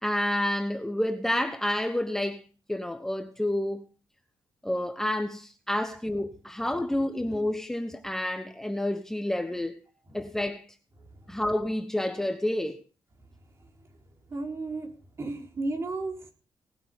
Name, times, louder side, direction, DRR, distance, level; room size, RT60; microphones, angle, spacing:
voice 1, 0.0-2.4 2.7-3.8 4.6-9.8 10.1-10.7 11.3-12.8, left 1 dB, 5° left, 1.0 m, -29 dB
voice 2, 14.3-14.9 15.2-16.3, right 2 dB, 40° right, 4.2 m, -33 dB
18.5 x 8.6 x 5.2 m
cardioid pair, 115°, 7 cm